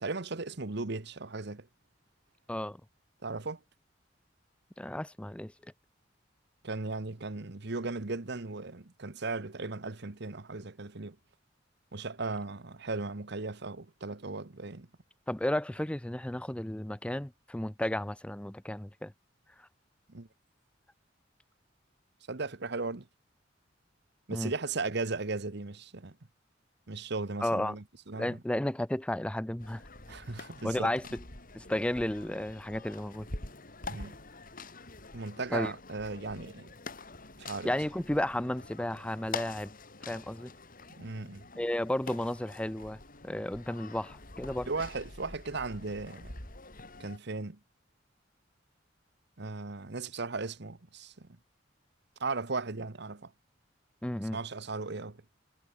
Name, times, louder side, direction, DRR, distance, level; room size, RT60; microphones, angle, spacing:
voice 1, 0.0-1.7 3.2-3.6 6.6-11.2 11.9-14.9 20.1-20.3 22.3-23.1 24.3-26.2 26.9-28.4 30.1-30.9 33.9-34.2 35.1-36.7 37.4-37.7 41.0-41.4 44.7-46.4 47.0-47.6 49.4-51.4 52.2-53.3 54.2-55.2, right 3 dB, 65° right, 1.3 m, -37 dB
voice 2, 4.8-5.5 15.3-19.1 24.3-24.5 27.4-27.8 28.1-29.8 30.6-31.0 31.5-33.3 35.5-35.7 37.6-39.7 40.1-40.5 41.6-44.7 54.0-54.4, left 1 dB, 5° left, 0.5 m, -33 dB
sound 1, 29.6-47.2, left 3 dB, 50° left, 4.9 m, -46 dB
head